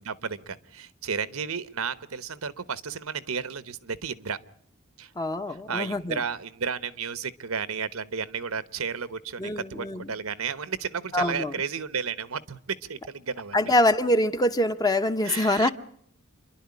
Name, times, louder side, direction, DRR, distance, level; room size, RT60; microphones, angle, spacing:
voice 1, 0.0-4.4 5.0-5.1 5.7-13.5 15.2-15.7, right 6 dB, 80° right, 1.1 m, -33 dB
voice 2, 5.2-6.2 9.4-10.1 11.1-11.6 13.5-15.7, left 1 dB, 20° left, 0.9 m, -24 dB
28.0 x 11.5 x 9.6 m
head